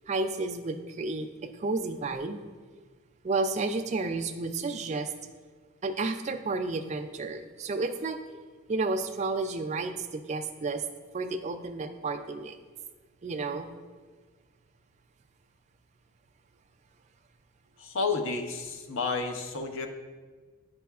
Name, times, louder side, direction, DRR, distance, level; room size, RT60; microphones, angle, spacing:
voice 1, 0.1-2.4 3.2-5.1 5.8-8.2 8.7-10.8 11.1-12.6 13.2-13.7, right 3 dB, 30° right, 7 dB, 0.3 m, -31 dB
voice 2, 17.8-19.9, left 4 dB, 65° left, 5 dB, 0.6 m, -31 dB
9.1 x 5.3 x 2.3 m, 1.5 s
head